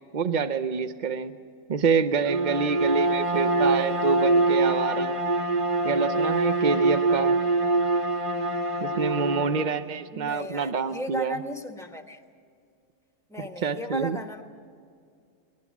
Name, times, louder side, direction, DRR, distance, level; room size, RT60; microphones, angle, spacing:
voice 1, 0.1-1.3 1.7-5.2 5.8-7.4 8.8-11.4 13.4-14.2, right 5 dB, 60° right, 9 dB, 0.4 m, -27 dB
Bowed string instrument, 2.2-9.8, right 2 dB, 25° right, 0.8 m, -24 dB
voice 2, 10.1-12.2 13.3-14.4, equal, ahead, 5 dB, 1.0 m, -36 dB
22.0 x 20.0 x 7.2 m, 2.2 s
omnidirectional pair, 1.8 m